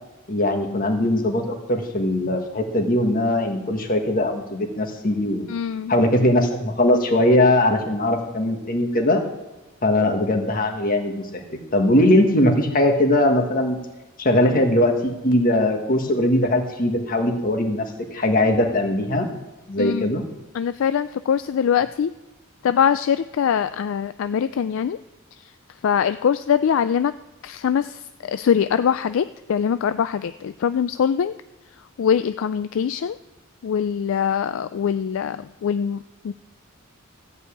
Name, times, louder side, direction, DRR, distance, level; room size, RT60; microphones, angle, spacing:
voice 1, 0.3-5.5 5.9-9.2 9.8-13.8 14.2-17.8 18.1-19.3 19.7-20.2, left 1 dB, 45° left, 4 dB, 1.7 m, -20 dB
voice 2, 5.5-5.9 19.8-20.1 20.5-22.1 22.6-25.0 25.4-25.5 25.8-27.1 27.4-31.3 32.0-33.2 33.6-36.3, left 7 dB, 65° left, 12 dB, 0.3 m, -23 dB
13.5 x 5.5 x 8.4 m, 1.1 s
head